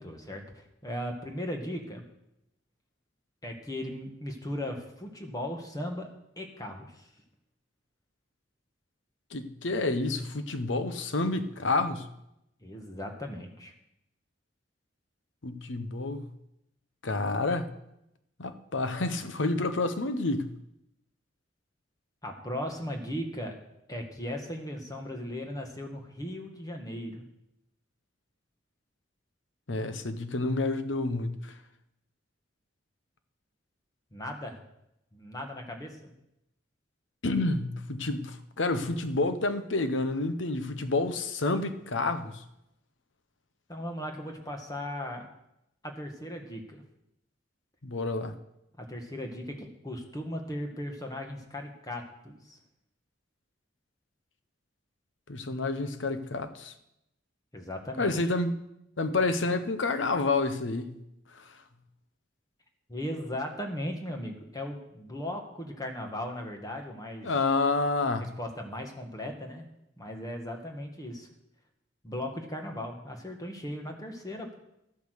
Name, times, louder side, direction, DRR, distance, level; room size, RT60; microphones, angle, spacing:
voice 1, 0.0-2.0 3.4-6.1 6.4-7.1 12.6-13.7 22.2-23.6 23.9-27.3 34.1-34.6 35.1-36.1 43.7-45.3 45.8-46.8 48.8-52.6 57.5-58.1 62.9-67.3 68.2-69.7 70.0-71.3 72.0-74.5, left 1 dB, 20° left, 1.6 m, -37 dB
voice 2, 9.3-12.1 15.4-16.3 17.0-17.7 18.4-20.5 29.7-31.5 37.2-42.4 47.8-48.3 55.3-56.7 58.0-58.5 59.0-60.9 61.3-61.4 67.2-68.3, left 3 dB, 85° left, 1.0 m, -29 dB
12.5 x 8.4 x 6.5 m
head